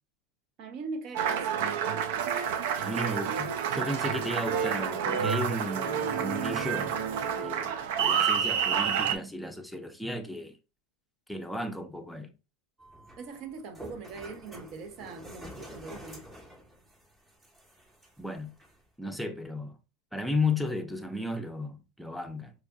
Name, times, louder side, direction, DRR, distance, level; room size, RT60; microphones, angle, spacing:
voice 1, 0.6-1.7 13.2-16.2, right 4 dB, 50° right, 0.9 m, -41 dB
Applause, 1.1-9.2, right 8 dB, 70° right, 0.4 m, -29 dB
voice 2, 2.8-7.0 7.4-10.6 11.3-12.3 18.2-18.5 19.0-19.8 20.1-22.5, left 2 dB, ahead, 0.6 m, -34 dB
sound 1, 12.8-18.8, equal, 15° right, 1.1 m, -49 dB
4.7 x 2.5 x 2.3 m
hypercardioid pair, 105°, 0 cm